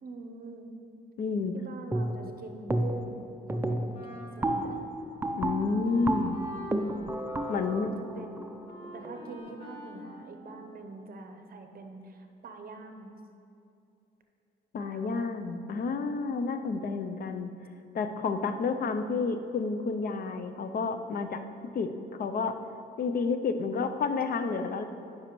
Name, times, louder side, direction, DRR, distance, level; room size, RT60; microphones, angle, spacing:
voice 1, 0.0-0.7 1.5-4.8 5.7-6.2 7.5-8.6 8.9-13.1 14.8-15.3, right 3 dB, 50° right, 6 dB, 0.8 m, -45 dB
voice 2, 1.2-1.6 5.3-6.4 7.5-7.9 14.7-17.5 17.9-21.4 21.7-21.9 22.2-22.6 23.0-24.8, left 4 dB, 50° left, 8 dB, 0.5 m, -30 dB
sound 1, 1.9-2.4 2.7-3.2 3.5-9.3, right 1 dB, 10° right, 0.5 m, -32 dB
Wind instrument woodwind instrument, 3.9-11.1, equal, 30° left, 1.3 m, -47 dB
9.9 x 5.6 x 3.1 m, 2.9 s
cardioid pair, 90°, 20 cm